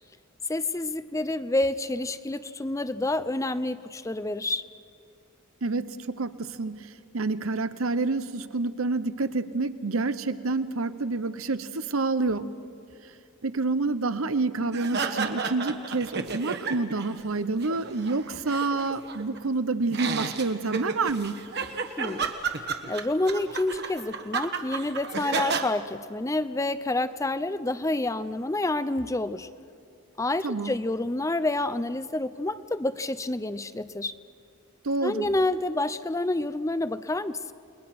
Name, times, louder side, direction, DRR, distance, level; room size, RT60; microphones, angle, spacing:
voice 1, 0.5-4.6 22.0-22.3 22.6-29.5 30.2-34.1 35.0-37.5, left 2 dB, 15° left, 13 dB, 0.5 m, -28 dB
voice 2, 5.6-12.5 13.4-21.4 30.4-30.8 34.8-35.3, right 3 dB, 75° right, 12 dB, 0.9 m, -28 dB
sound 1, 14.7-17.1 17.4-19.4 19.9-25.7, right 5 dB, 50° right, 1.3 m, -32 dB
29.5 x 21.0 x 6.0 m, 2.4 s
head